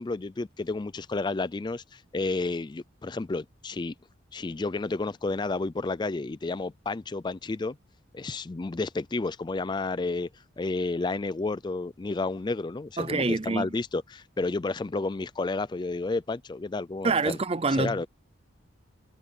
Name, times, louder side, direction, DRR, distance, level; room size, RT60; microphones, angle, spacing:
voice 1, 0.0-3.9 4.3-7.8 8.1-10.3 10.6-17.4 17.8-18.1, left 3 dB, 20° left, 0.4 m, -31 dB
voice 2, 13.0-13.7 17.0-18.1, right 3 dB, 30° right, 0.6 m, -26 dB
head